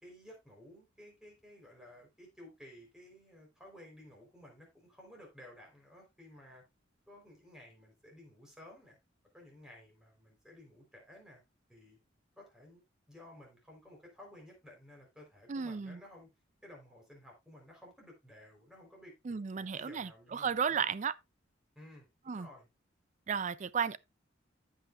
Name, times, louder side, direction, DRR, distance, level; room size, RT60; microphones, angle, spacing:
voice 1, 0.0-6.6 7.1-9.0 9.3-11.4 11.7-12.0 12.4-12.8 13.1-16.3 16.6-20.9 21.8-22.7, left 1 dB, 5° right, 3.6 m, -55 dB
voice 2, 15.5-16.0 19.3-21.1 22.3-22.5 23.3-24.0, right 6 dB, 40° right, 0.4 m, -34 dB
15.0 x 5.6 x 2.4 m
head